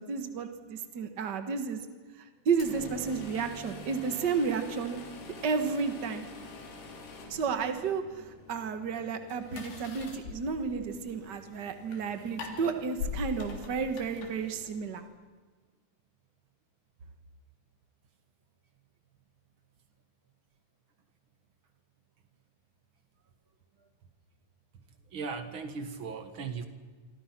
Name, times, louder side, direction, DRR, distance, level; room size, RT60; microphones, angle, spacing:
voice 1, 0.0-1.8 2.2-5.0 5.4-6.3 7.3-15.0, right 5 dB, 85° right, 7 dB, 0.9 m, -32 dB
sound 1, 2.5-15.1, left 4 dB, 85° left, 5.2 m, -44 dB
voice 2, 25.1-26.6, right 5 dB, 50° right, 8 dB, 1.7 m, -37 dB
27.5 x 25.0 x 6.0 m, 1.4 s
omnidirectional pair, 4.4 m